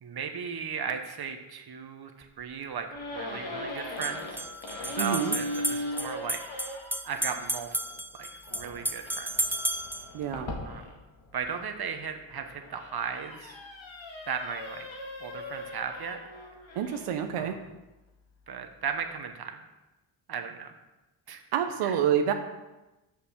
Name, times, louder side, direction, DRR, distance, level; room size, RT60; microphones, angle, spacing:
voice 1, 0.0-4.5 4.8-6.7 7.0-9.5 10.6-10.9 11.3-13.6 14.2-14.9 15.2-16.2 17.4-17.6 18.5-19.6 20.3-20.7 21.3-21.4 21.8-22.0, right 6 dB, 50° right, 6 dB, 1.2 m, -36 dB
sound 1, 2.2-2.3 3.8-10.1, right 1 dB, 5° right, 0.4 m, -33 dB
sound 2, 2.9-7.0 8.4-11.6 12.3-17.2, left 1 dB, 65° left, 1.9 m, -39 dB
voice 2, 5.0-5.4 10.1-10.5 16.8-17.6 21.5-22.3, right 8 dB, 90° right, 6 dB, 0.8 m, -27 dB
6.6 x 5.9 x 6.5 m, 1.0 s
cardioid pair, 75°, 50 cm